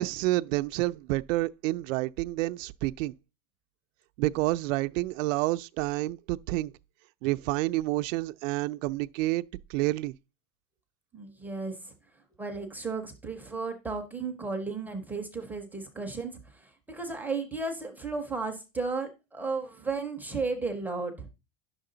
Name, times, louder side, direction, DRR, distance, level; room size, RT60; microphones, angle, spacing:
voice 1, 0.0-3.1 4.2-6.7 7.2-9.4 9.7-10.1, right 18 dB, 90° right, 0.5 m, -29 dB
voice 2, 11.1-11.9 12.4-21.3, right 4 dB, 5° right, 0.4 m, -34 dB
10.0 x 6.4 x 3.8 m
supercardioid pair, 180°, 38 cm